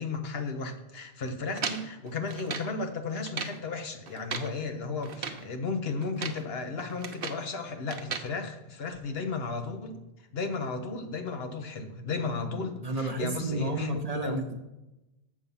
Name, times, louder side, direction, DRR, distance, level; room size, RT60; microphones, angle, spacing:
voice 1, 0.0-10.0 10.3-14.4, left 4 dB, 70° left, 6 dB, 1.1 m, -34 dB
sound 1, 1.6-2.7 3.2-3.6 4.1-4.5 5.0-5.5 6.0-6.5 6.8-7.5 7.9-8.3, right 5 dB, 65° right, 0.9 m, -37 dB
voice 2, 12.8-14.6, right 2 dB, 40° right, 5 dB, 0.7 m, -31 dB
7.1 x 7.0 x 5.5 m, 0.98 s
omnidirectional pair, 1.1 m